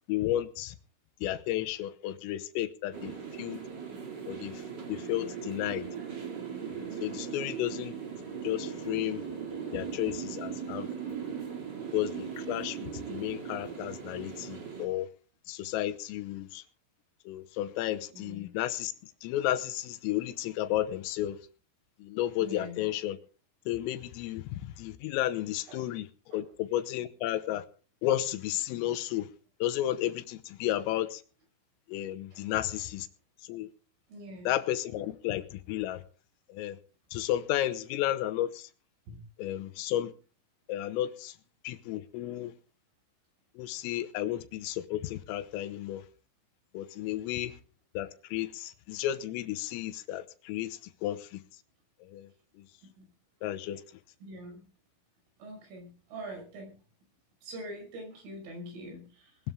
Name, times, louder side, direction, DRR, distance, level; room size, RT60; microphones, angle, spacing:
voice 1, 0.1-0.8 1.2-3.6 4.2-4.6 4.9-5.9 6.7-8.0 8.4-9.2 9.7-10.9 11.9-15.1 15.5-16.6 17.3-21.4 22.0-23.2 23.7-26.1 26.3-27.7 28.0-29.3 29.6-31.2 31.9-33.1 33.4-33.7 34.5-36.0 36.5-36.8 37.1-38.7 39.4-40.1 40.7-41.4 41.7-42.5 43.6-46.0 46.7-47.6 48.0-51.4 52.0-52.3 52.6-52.7 53.4-53.8, left 13 dB, 85° left, 3.6 m, -33 dB
sound 1, 2.9-14.9, right 7 dB, 35° right, 1.7 m, -39 dB
voice 2, 18.1-18.5 22.4-22.9 25.7-25.9 26.3-26.4 32.3-32.4 34.1-34.5 39.1-39.2 53.0-53.1 54.2-54.6 55.4-56.8 57.4-59.4, equal, 75° right, 8.4 m, -44 dB
20.5 x 12.5 x 3.7 m
omnidirectional pair, 5.8 m